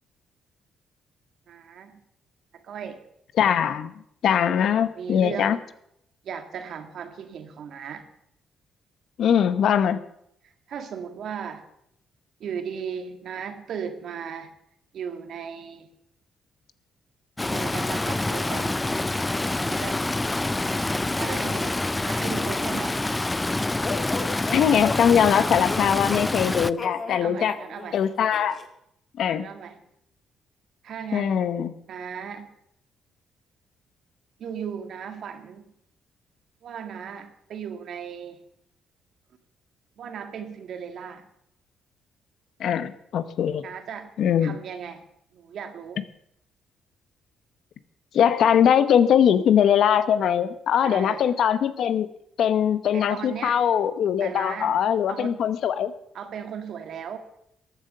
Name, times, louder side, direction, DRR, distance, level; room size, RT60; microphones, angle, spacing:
voice 1, 1.5-2.0 2.5-3.0 4.8-5.6 6.2-8.1 10.4-11.7 12.4-14.5 14.9-15.9 17.5-18.8 19.5-20.0 21.2-23.0 27.1-28.0 29.4-29.8 30.8-31.5 31.9-32.5 34.4-35.7 36.6-38.4 40.0-41.3 43.6-44.1 44.4-45.0 45.3-46.0 50.8-51.2 52.9-53.6 54.2-54.7 55.1-55.4 56.1-57.2, right 7 dB, 65° right, 8 dB, 1.8 m, -36 dB
voice 2, 3.4-3.9 4.2-5.6 9.2-10.0 24.5-27.6 27.9-28.6 29.2-29.5 31.1-31.7 42.6-43.6 44.2-44.6 48.1-52.1 52.4-55.9, left 8 dB, 70° left, 13 dB, 0.9 m, -21 dB
Stream, 17.4-26.7, left 2 dB, 15° left, 0.4 m, -26 dB
sound 1, 23.8-28.7, left 4 dB, 35° left, 1.8 m, -36 dB
14.0 x 9.2 x 6.7 m, 0.75 s
cardioid pair, 90°, 0 cm